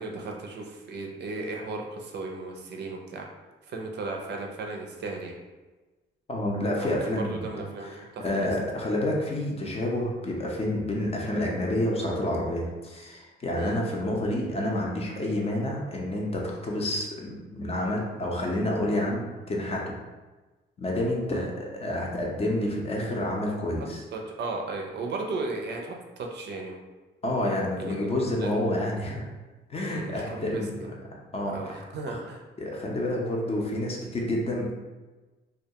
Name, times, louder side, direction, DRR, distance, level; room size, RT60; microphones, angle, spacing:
voice 1, 0.0-3.3 3.7-5.4 6.8-7.9 8.2-8.5 13.6-13.8 21.3-21.5 24.1-26.8 27.8-28.5 29.9-30.9 31.5-32.4, right 3 dB, 60° right, 1 dB, 0.4 m, -35 dB
voice 2, 6.3-20.0 20.8-24.0 27.2-29.3 29.7-30.8 31.3-31.6 32.1-32.2 32.6-34.7, left 1 dB, 30° left, -2 dB, 0.6 m, -29 dB
2.3 x 2.2 x 2.7 m, 1.2 s
cardioid pair, 90°, 20 cm